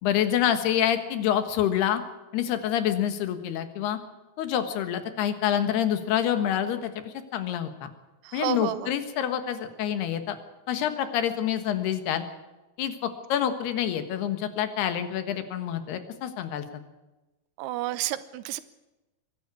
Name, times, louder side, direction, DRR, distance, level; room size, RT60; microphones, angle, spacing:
voice 1, 0.0-2.0 2.3-4.0 4.4-7.9 8.3-10.4 10.7-12.2 12.8-16.8, left 10 dB, 80° left, 9 dB, 3.5 m, -27 dB
voice 2, 8.3-8.9 17.6-18.6, right 14 dB, 90° right, 14 dB, 3.0 m, -30 dB
23.0 x 12.0 x 9.7 m, 1.1 s
omnidirectional pair, 4.6 m